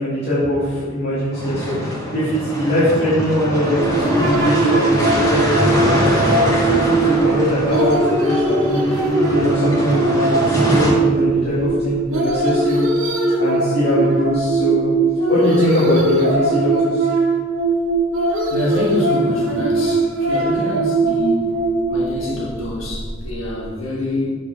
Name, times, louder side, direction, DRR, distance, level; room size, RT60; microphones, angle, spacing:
voice 1, 0.0-6.2 6.7-12.8 13.4-14.9 15.3-17.1, equal, 55° left, -10 dB, 2.1 m, -21 dB
sound 1, 1.3-10.9, equal, 20° left, 1.7 m, -23 dB
sound 2, 3.8-23.3, right 2 dB, 80° right, 1.4 m, -20 dB
voice 2, 18.5-21.6 21.9-24.3, left 1 dB, 85° left, -4 dB, 1.6 m, -26 dB
7.0 x 4.8 x 5.2 m, 1.5 s
head